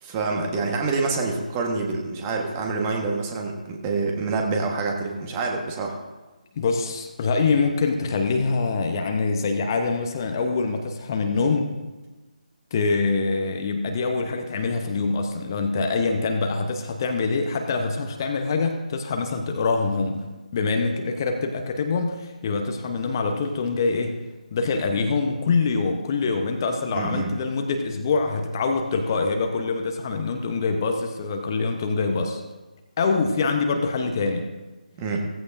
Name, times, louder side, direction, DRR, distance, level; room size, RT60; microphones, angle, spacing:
voice 1, 0.0-5.9 26.9-27.3 35.0-35.2, right 3 dB, 15° right, 1 dB, 1.4 m, -26 dB
voice 2, 6.6-11.7 12.7-20.2 20.5-24.2 24.5-32.4 33.0-34.5, left 4 dB, 25° left, 4 dB, 0.9 m, -24 dB
16.0 x 15.0 x 2.6 m, 1.2 s
figure-of-eight pair, 150°, 5 cm